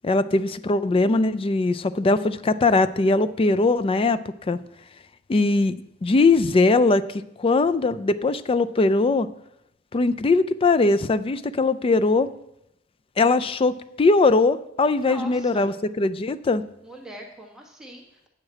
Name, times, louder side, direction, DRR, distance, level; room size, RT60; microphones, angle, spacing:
voice 1, 0.0-4.2 4.5-4.6 5.3-5.8 6.0-9.3 9.9-12.3 13.2-16.6, left 3 dB, 30° left, 13 dB, 0.4 m, -20 dB
voice 2, 15.0-15.7 16.8-18.3, right 1 dB, 5° right, -1 dB, 1.3 m, -41 dB
8.7 x 4.8 x 7.3 m, 0.82 s
head